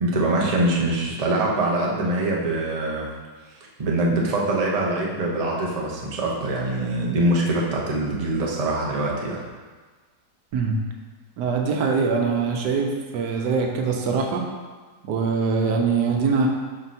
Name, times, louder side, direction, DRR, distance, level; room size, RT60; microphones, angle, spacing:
voice 1, 0.0-3.1 3.8-9.4, right 2 dB, 35° right, -2 dB, 0.6 m, -23 dB
voice 2, 11.4-14.4 15.1-16.5, right 5 dB, 85° right, 2 dB, 1.3 m, -23 dB
5.2 x 4.4 x 4.2 m, 1.4 s
omnidirectional pair, 1.8 m